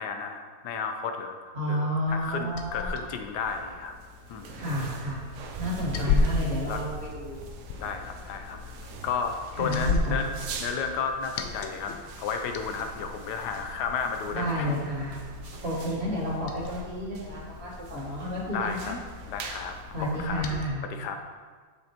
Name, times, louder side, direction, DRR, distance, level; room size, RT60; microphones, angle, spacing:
voice 1, 0.0-3.9 4.3-4.6 6.0-6.3 6.6-6.8 7.8-8.6 9.0-10.3 10.6-14.7 15.4-15.6 18.5-18.9 19.3-20.4 20.8-21.2, left 6 dB, 90° left, 6 dB, 1.3 m, -33 dB
voice 2, 1.5-2.9 4.5-5.2 5.6-7.4 9.6-10.2 14.3-15.2 15.6-18.9 19.9-20.8, equal, 40° right, -5 dB, 1.7 m, -31 dB
Liquid, 2.1-20.7, left 4 dB, 70° left, 0.9 m, -36 dB
sound 1, 2.9-20.8, right 4 dB, 80° right, 1.3 m, -44 dB
8.0 x 6.5 x 2.9 m, 1.5 s
omnidirectional pair, 1.7 m